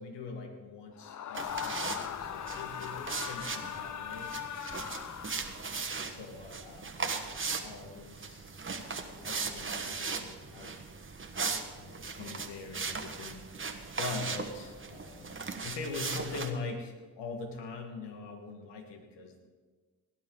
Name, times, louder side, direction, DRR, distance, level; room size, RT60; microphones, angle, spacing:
voice 1, 0.0-4.3 4.9-5.3 6.1-8.5 8.8-10.9 11.8-13.5 14.0-19.5, left 3 dB, 85° left, 4 dB, 1.6 m, -43 dB
Screaming, 1.0-5.8, left 9 dB, 45° left, 0.6 m, -39 dB
sound 1, 1.3-16.5, right 4 dB, 30° right, 1.2 m, -38 dB
18.0 x 10.5 x 3.8 m, 1.4 s
cardioid pair, 75°, 41 cm